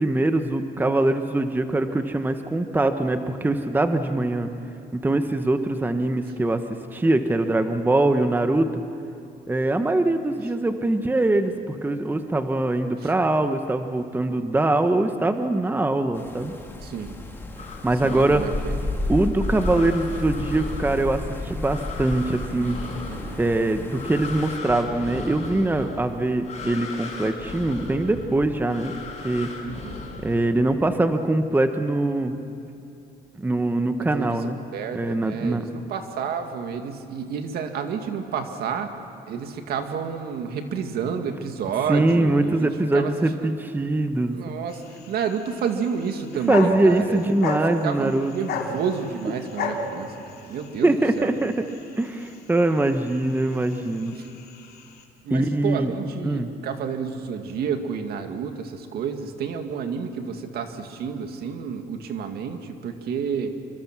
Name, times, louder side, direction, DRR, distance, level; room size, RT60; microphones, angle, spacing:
voice 1, 0.0-4.5 5.0-6.6 6.9-8.8 9.5-16.6 17.8-18.4 19.1-22.8 23.2-28.9 29.2-29.5 30.2-32.3 33.4-34.6 34.9-35.6 41.9-44.4 46.5-48.3 50.8-51.7 52.0-54.2 55.3-55.9 56.2-56.5, right 2 dB, 10° right, 8 dB, 1.1 m, -23 dB
sound 1, 16.1-24.6, left 2 dB, 15° left, 2.6 m, -32 dB
voice 2, 16.8-17.2 18.0-18.8 23.1-23.4 29.6-30.0 34.0-34.4 34.7-38.9 39.3-43.1 43.4-43.5 44.3-51.3 54.2-54.3 55.2-63.5, right 6 dB, 65° right, 6 dB, 2.1 m, -30 dB
sound 2, 17.6-30.9, left 4 dB, 40° left, 6.1 m, -38 dB
sound 3, 44.7-55.0, left 3 dB, 70° left, 3.0 m, -35 dB
27.0 x 23.5 x 6.1 m, 2.7 s
cardioid pair, 110°, 17 cm